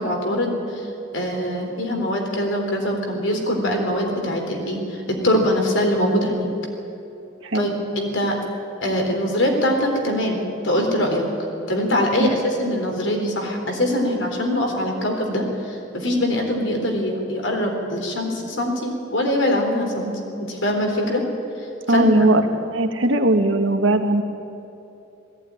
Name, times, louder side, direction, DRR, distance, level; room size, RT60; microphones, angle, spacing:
voice 1, 0.0-6.5 7.5-8.4 8.8-11.3 11.7-20.1 20.5-21.2 21.6-22.4, left 1 dB, 75° left, 2 dB, 3.8 m, -23 dB
voice 2, 21.9-22.4 22.7-24.2, right 2 dB, 75° right, 5 dB, 1.6 m, -18 dB
18.0 x 15.5 x 9.9 m, 2.9 s
head